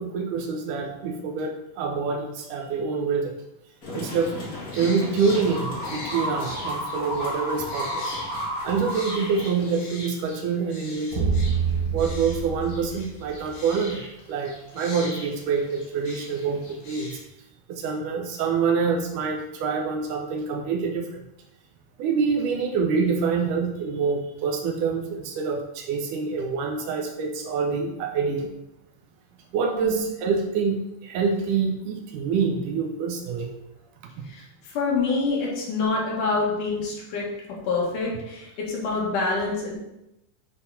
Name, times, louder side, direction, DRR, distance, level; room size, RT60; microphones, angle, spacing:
voice 1, 0.0-3.3 3.9-4.3 4.7-8.1 8.6-11.3 11.9-14.0 14.3-17.2 17.7-21.2 22.0-28.5 29.5-33.5 34.2-34.3, right 5 dB, 70° right, 2 dB, 2.3 m, -26 dB
sound 1, 3.8-9.8, left 1 dB, 30° left, 2.2 m, -32 dB
sound 2, 4.0-17.2, left 2 dB, 80° left, 3.7 m, -42 dB
sound 3, 11.1-13.7, right 5 dB, 45° right, 1.7 m, -26 dB
voice 2, 34.2-37.3 37.7-39.7, left 3 dB, 60° left, -4 dB, 3.2 m, -26 dB
9.9 x 4.0 x 4.2 m, 0.88 s
omnidirectional pair, 4.2 m